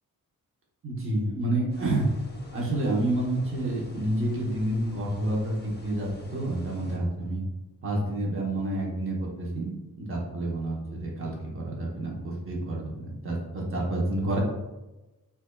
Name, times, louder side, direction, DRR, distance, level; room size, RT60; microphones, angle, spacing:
voice 1, 0.8-2.1 2.5-7.4 7.8-14.4, right 1 dB, 40° right, -3 dB, 0.9 m, -29 dB
sound 1, 1.7-7.0, left 2 dB, 30° left, 0.7 m, -48 dB
5.6 x 2.4 x 2.2 m, 1.0 s
wide cardioid pair, 115°, 34 cm